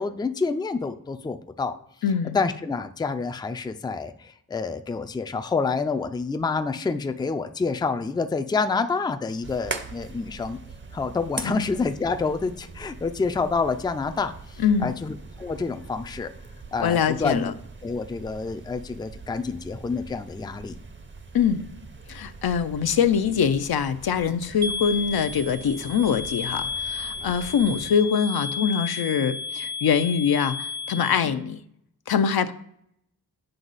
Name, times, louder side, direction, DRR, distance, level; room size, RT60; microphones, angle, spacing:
voice 1, 0.0-1.7 2.3-10.6 10.9-16.3 16.7-17.5 17.8-20.8, left 4 dB, 10° left, 8 dB, 0.4 m, -28 dB
voice 2, 2.0-2.4 11.4-11.7 14.6-14.9 16.8-17.5 21.3-21.6 22.1-31.6 32.1-32.5, left 7 dB, 75° left, 10 dB, 0.6 m, -23 dB
sound 1, 9.4-27.9, right 3 dB, 30° right, 0.6 m, -42 dB
sound 2, 24.6-31.2, left 5 dB, 80° right, 1.1 m, -33 dB
7.8 x 5.4 x 4.0 m, 0.72 s
wide cardioid pair, 90°, 38 cm